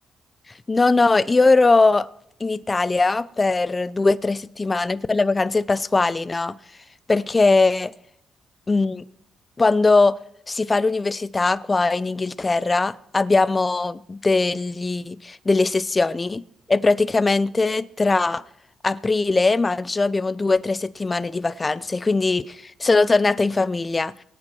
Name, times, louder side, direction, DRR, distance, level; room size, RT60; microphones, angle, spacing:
voice 1, 0.7-2.1 2.4-6.6 7.1-7.9 8.7-9.0 9.6-10.2 10.5-16.4 16.7-18.4 18.8-24.1, left 3 dB, 25° left, 0.5 m, -20 dB
23.0 x 8.8 x 4.4 m
cardioid pair, 90°, 0 cm